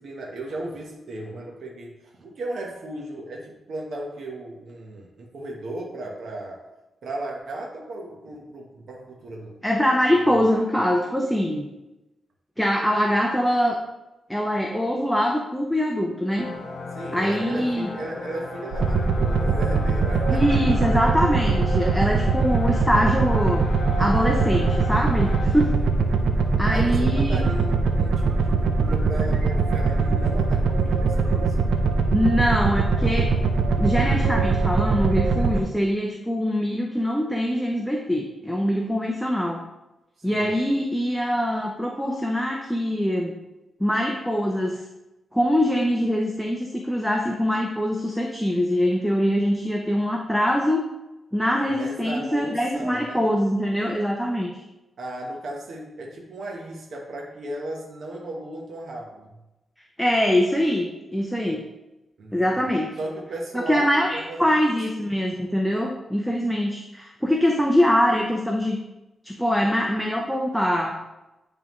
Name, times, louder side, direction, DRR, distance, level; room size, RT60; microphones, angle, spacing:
voice 1, 0.0-6.6 7.0-9.6 16.9-20.8 25.5-25.9 26.7-31.6 40.2-40.6 51.7-53.2 55.0-59.4 62.2-62.7 63.0-65.0, right 1 dB, 65° right, -1 dB, 1.0 m, -36 dB
voice 2, 9.6-11.7 12.6-13.8 14.3-16.5 17.1-17.9 20.3-23.6 24.0-25.7 26.6-27.4 32.1-33.3 33.8-39.6 40.2-43.4 43.8-44.8 45.3-50.9 51.3-54.5 60.0-61.6 62.3-62.9 63.5-68.8 69.2-71.0, equal, ahead, 1 dB, 0.5 m, -23 dB
sound 1, 16.3-25.5, left 3 dB, 50° left, 0.7 m, -36 dB
sound 2, 18.7-35.6, right 4 dB, 90° right, 0.6 m, -22 dB
9.0 x 3.6 x 3.0 m, 0.99 s
wide cardioid pair, 150°, 0 cm